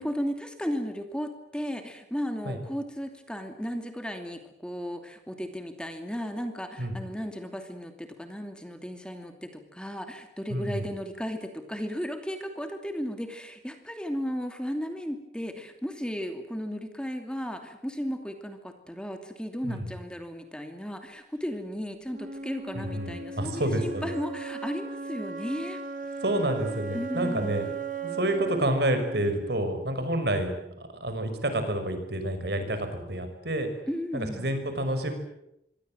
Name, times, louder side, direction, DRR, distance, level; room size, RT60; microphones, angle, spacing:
voice 1, 0.0-25.8 26.9-27.8 33.9-34.6, equal, 5° left, 6 dB, 2.7 m, -35 dB
voice 2, 10.5-10.9 19.6-19.9 22.7-24.1 26.2-27.7 28.0-33.7 34.1-35.1, right 1 dB, 65° right, 8 dB, 5.9 m, -29 dB
Wind instrument woodwind instrument, 22.1-30.1, right 4 dB, 45° right, 3.3 m, -37 dB
26.0 x 24.0 x 7.7 m, 0.83 s
head